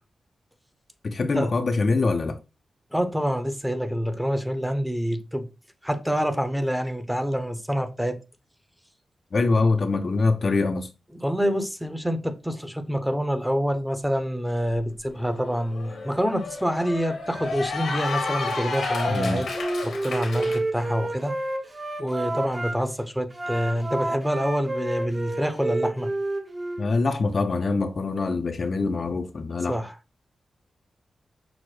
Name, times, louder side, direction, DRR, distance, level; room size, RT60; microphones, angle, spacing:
voice 1, 1.0-2.4 9.3-10.9 19.1-19.5 26.8-29.8, left 3 dB, 55° left, 0.4 m, -24 dB
voice 2, 2.9-5.5 5.8-8.2 11.1-19.5 19.8-21.3 22.0-26.1 29.7-29.9, equal, 5° right, 0.7 m, -27 dB
Cheering / Applause, 15.2-20.6, left 3 dB, 80° left, 1.0 m, -31 dB
Wind instrument woodwind instrument, 19.5-22.7 23.3-26.9, right 2 dB, 30° right, 0.8 m, -30 dB
6.0 x 2.0 x 3.1 m
cardioid pair, 60°, 0 cm